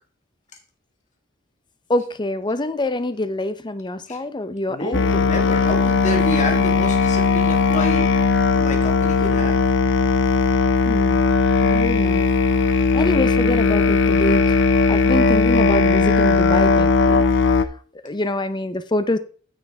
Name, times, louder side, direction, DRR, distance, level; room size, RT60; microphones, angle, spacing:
voice 1, 1.9-5.1 6.3-6.4 10.9-11.2 11.6-12.3 12.9-17.2 18.0-19.2, left 2 dB, 25° left, 0.6 m, -25 dB
voice 2, 4.7-8.1 8.5-9.6, left 1 dB, 40° left, 1.8 m, -28 dB
Musical instrument, 4.9-17.6, left 4 dB, 65° left, 0.6 m, -18 dB
9.7 x 6.5 x 3.5 m
head